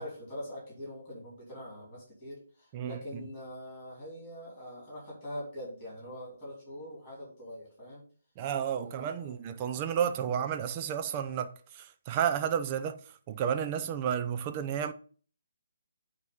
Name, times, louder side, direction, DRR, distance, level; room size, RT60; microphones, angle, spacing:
voice 1, 0.0-8.0 8.9-9.3, equal, 25° left, 4.3 m, -43 dB
voice 2, 2.7-3.2 8.4-14.9, right 8 dB, 30° right, 0.7 m, -32 dB
9.1 x 3.1 x 5.7 m
figure-of-eight pair, 140°, 0 cm